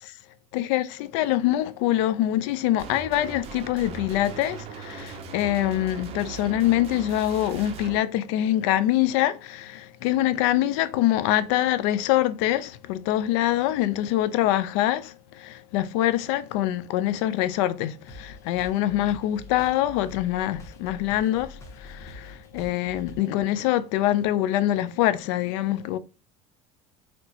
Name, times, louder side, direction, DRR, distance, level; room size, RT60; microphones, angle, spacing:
voice 1, 0.5-26.0, left 13 dB, 75° left, 0.4 m, -24 dB
sound 1, 2.8-8.0, right 7 dB, 40° right, 0.5 m, -39 dB
sound 2, 18.1-23.4, left 2 dB, 20° left, 0.7 m, -45 dB
4.3 x 2.0 x 2.7 m
cardioid pair, 160°, 15 cm